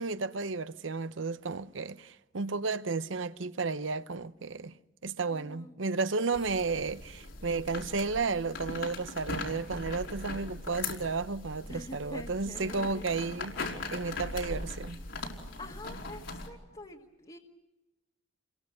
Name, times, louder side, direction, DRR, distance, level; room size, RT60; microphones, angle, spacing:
voice 1, 0.0-4.7 5.0-13.6 13.9-15.0, right 4 dB, 80° right, 0.8 m, -33 dB
voice 2, 5.3-5.7 11.6-13.0 15.6-17.4, left 1 dB, 30° left, 1.8 m, -46 dB
sound 1, 6.3-16.5, left 3 dB, 80° left, 4.9 m, -40 dB
29.5 x 23.0 x 6.5 m
head